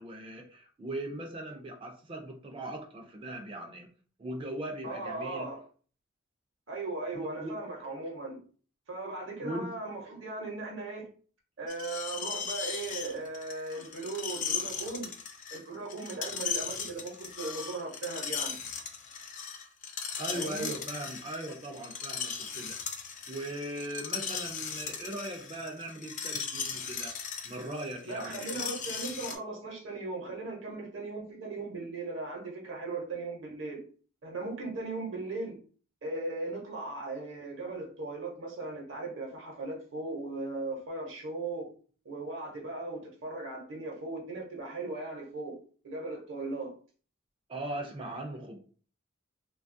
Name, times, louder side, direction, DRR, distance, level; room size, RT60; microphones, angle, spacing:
voice 1, 0.0-3.9 4.2-5.5 7.1-7.6 9.4-9.7 20.2-22.8 23.3-27.1 27.4-28.6 47.5-48.6, right 1 dB, 25° right, 3 dB, 0.4 m, -39 dB
voice 2, 4.8-5.6 6.7-8.4 8.9-11.1 11.6-15.1 15.5-18.6 20.3-20.7 28.0-33.8 34.2-35.6 36.0-41.7 42.0-45.6 45.8-46.7, right 2 dB, 65° right, 0 dB, 0.8 m, -38 dB
Screech, 11.7-29.3, left 6 dB, 40° left, 0.4 m, -37 dB
2.7 x 2.3 x 2.6 m, 0.42 s
head